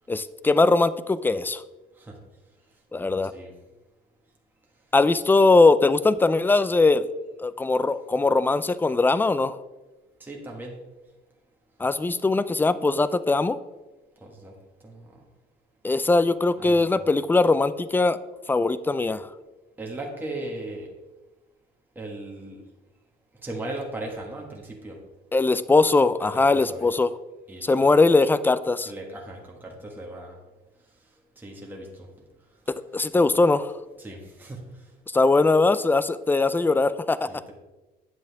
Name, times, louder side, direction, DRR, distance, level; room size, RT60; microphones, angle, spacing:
voice 1, 0.1-1.6 2.9-3.3 4.9-7.1 7.4-9.6 11.8-13.6 15.8-18.2 18.5-19.3 25.3-27.1 27.6-28.9 32.9-33.7 35.1-37.3, left 3 dB, 10° left, 15 dB, 0.4 m, -20 dB
voice 2, 10.2-10.7 14.2-14.5 14.8-15.1 16.6-17.1 19.8-20.9 21.9-22.6 23.4-25.0 26.2-26.9 27.5-27.9 28.8-30.4 31.4-32.1 34.0-34.6 37.3-37.5, right 2 dB, 10° right, -1 dB, 1.6 m, -37 dB
9.5 x 7.4 x 3.5 m, 1.1 s
cardioid pair, 110°, 17 cm